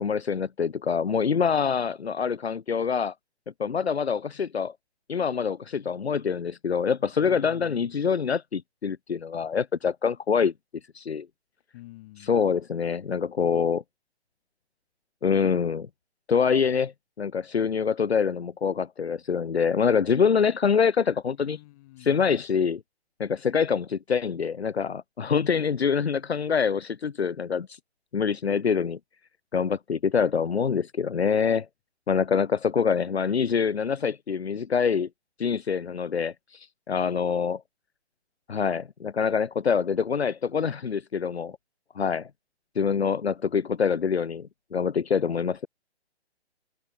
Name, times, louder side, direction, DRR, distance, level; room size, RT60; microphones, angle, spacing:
voice 1, 0.0-3.1 3.6-4.7 5.1-10.5 10.9-11.3 12.2-13.8 15.2-15.9 16.3-21.6 22.0-22.8 23.2-27.8 28.1-29.0 29.5-31.7 32.1-35.1 35.4-37.6 38.5-41.6 42.0-42.3 42.8-45.7, left 6 dB, 65° left, 1.7 m, -25 dB
voice 2, 7.2-8.0 11.7-12.4 21.4-22.3, left 18 dB, 30° left, 7.7 m, -48 dB
figure-of-eight pair, 135°, 34 cm